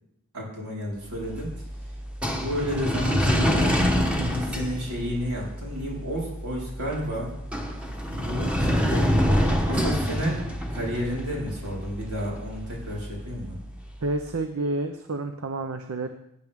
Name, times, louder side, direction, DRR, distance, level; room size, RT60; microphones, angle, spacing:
voice 1, 0.3-1.5 2.2-3.8 4.3-7.3 8.1-10.4 10.7-13.6, equal, 85° right, -4 dB, 4.7 m, -31 dB
sound 1, 1.1-14.2, equal, 5° right, 1.1 m, -27 dB
voice 2, 3.9-4.3 14.0-16.1, right 2 dB, 70° right, 7 dB, 0.7 m, -30 dB
18.0 x 9.1 x 3.6 m, 0.79 s
head